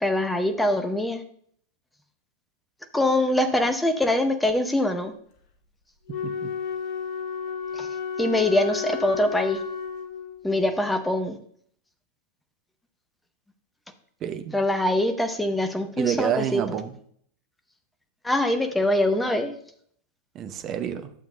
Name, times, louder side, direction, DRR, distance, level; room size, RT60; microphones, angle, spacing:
voice 1, 0.0-1.2 2.9-5.1 7.8-7.9 8.2-9.6 10.4-11.4 14.5-16.6 18.2-19.5, left 1 dB, 5° left, 7 dB, 0.9 m, -23 dB
Wind instrument woodwind instrument, 6.1-10.5, left 6 dB, 45° left, 1.1 m, -32 dB
voice 2, 6.1-6.5 14.2-14.6 16.0-17.0 20.3-21.1, right 9 dB, 30° right, 8 dB, 0.7 m, -28 dB
12.0 x 7.0 x 2.2 m, 0.62 s
figure-of-eight pair, 90°, 0 cm